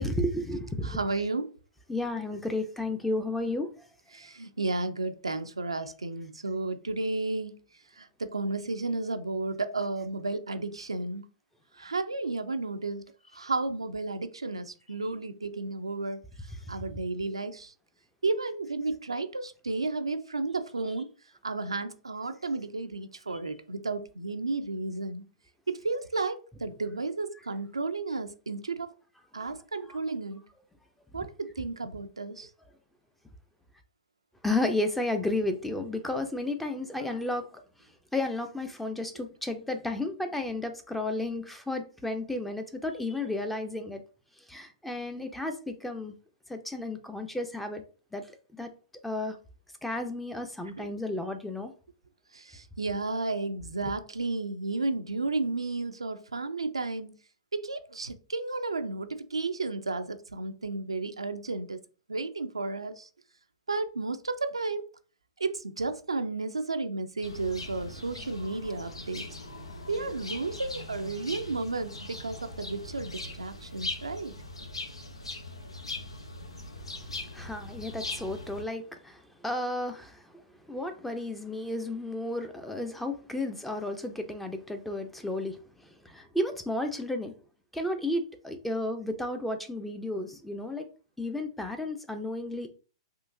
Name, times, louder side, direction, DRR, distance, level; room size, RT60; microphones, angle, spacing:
voice 1, 0.0-1.0 1.9-3.7 29.4-29.5 29.9-30.0 34.4-37.5 38.1-44.0 44.5-46.1 46.5-47.8 48.1-48.2 48.6-48.7 49.0-49.4 49.8-51.7 77.3-80.2 80.7-85.6 86.0-87.3 87.7-90.9 91.2-92.7, left 2 dB, 5° left, 0.5 m, -32 dB
voice 2, 0.8-1.5 4.1-7.6 8.0-11.2 11.8-13.0 13.3-16.2 16.7-17.7 18.2-21.1 21.4-25.2 25.7-28.9 29.3-30.4 31.1-32.5 50.8-50.9 52.3-57.1 57.5-61.8 62.1-63.1 63.7-64.8 65.4-69.2 69.9-74.3, right 3 dB, 90° right, 0.4 m, -33 dB
sound 1, 67.2-78.6, left 2 dB, 90° left, 0.6 m, -40 dB
3.7 x 2.5 x 2.6 m
figure-of-eight pair, 115°, 3 cm